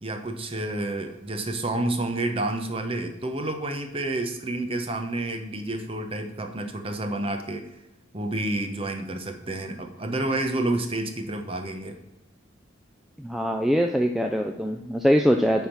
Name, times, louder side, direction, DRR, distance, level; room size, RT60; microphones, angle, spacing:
voice 1, 0.0-7.7 8.1-11.9, right 2 dB, 25° right, 5 dB, 0.8 m, -29 dB
voice 2, 13.2-15.7, equal, ahead, 3 dB, 0.3 m, -23 dB
9.7 x 3.6 x 5.9 m, 0.96 s
head